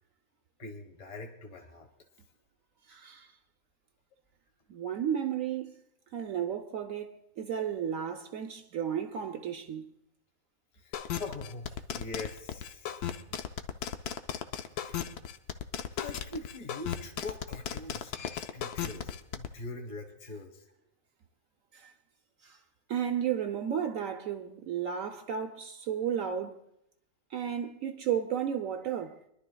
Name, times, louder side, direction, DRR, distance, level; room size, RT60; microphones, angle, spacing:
voice 1, 0.6-1.9 10.7-13.0 14.8-15.1 16.0-18.1 18.5-20.6, left 3 dB, 25° left, 1.2 m, -43 dB
voice 2, 2.9-3.3 4.7-5.8 6.1-9.9 21.7-21.9 22.4-22.6 22.9-26.6 27.3-29.2, right 8 dB, 65° right, 1.0 m, -33 dB
sound 1, 10.9-19.5, left 9 dB, 80° left, 1.3 m, -35 dB
25.0 x 11.5 x 2.2 m
omnidirectional pair, 1.6 m